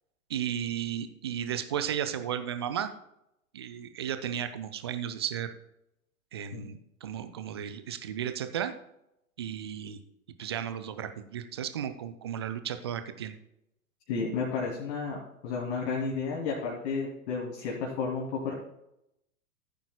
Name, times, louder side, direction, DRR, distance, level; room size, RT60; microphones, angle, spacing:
voice 1, 0.3-2.9 3.5-5.5 6.3-8.7 9.4-10.0 10.4-13.3, right 9 dB, 20° right, 10 dB, 0.3 m, -34 dB
voice 2, 14.1-15.2 15.4-18.5, left 4 dB, 45° left, -3 dB, 2.6 m, -32 dB
15.0 x 9.0 x 2.2 m, 0.82 s
figure-of-eight pair, 100°, 44 cm